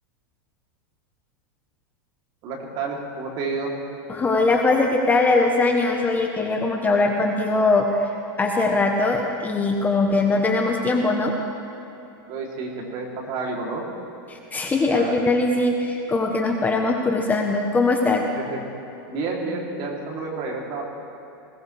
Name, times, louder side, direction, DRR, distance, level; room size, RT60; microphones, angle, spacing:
voice 1, 2.4-3.7 12.3-13.8 14.9-15.1 18.3-18.6 19.1-20.8, right 4 dB, 45° right, -1 dB, 3.2 m, -30 dB
voice 2, 4.1-8.1 8.4-11.3 14.3-18.3, left 3 dB, 15° left, 2 dB, 1.0 m, -21 dB
20.5 x 17.5 x 3.4 m, 3.0 s
supercardioid pair, 140°, 12 cm